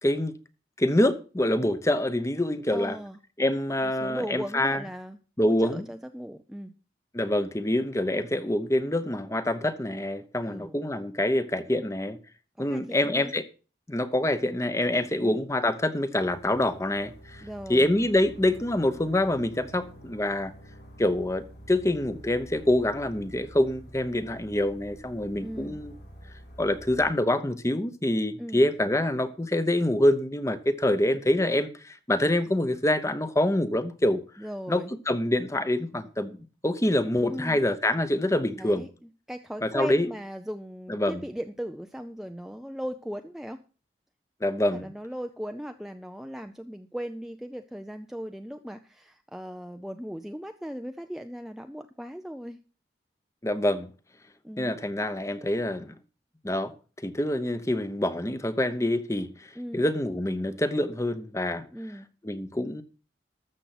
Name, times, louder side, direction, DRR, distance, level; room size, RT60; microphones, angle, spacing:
voice 1, 0.0-0.3 0.8-3.0 3.4-4.8 5.4-5.9 7.1-12.2 12.6-13.4 13.9-17.4 17.7-20.5 21.0-25.9 26.6-34.2 34.7-36.4 36.6-38.8 39.6-40.1 40.9-41.2 44.4-44.9 53.4-53.9 54.6-55.9 56.4-56.7 57.0-61.7 62.2-62.8, left 1 dB, 15° left, 0.9 m, -26 dB
voice 2, 2.7-3.2 3.8-5.2 5.4-6.7 10.4-10.7 12.6-13.4 15.2-15.4 17.4-17.9 25.4-25.8 28.4-28.6 34.4-34.9 37.3-37.6 38.5-43.6 44.7-52.6 54.4-54.7 59.6-59.9 61.7-62.1, equal, ahead, 0.5 m, -38 dB
sound 1, 16.2-27.1, equal, 80° left, 4.8 m, -48 dB
13.5 x 7.0 x 6.0 m
head